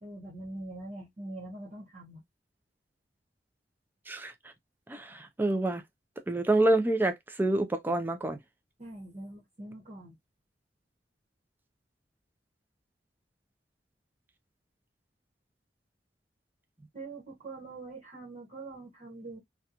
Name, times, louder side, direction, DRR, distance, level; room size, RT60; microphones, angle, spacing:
voice 1, 0.0-2.2 8.8-10.1 16.9-19.4, right 2 dB, 40° right, 1.0 m, -43 dB
voice 2, 4.9-5.8 6.3-8.4, right 2 dB, 10° right, 0.3 m, -27 dB
2.8 x 2.2 x 2.3 m
head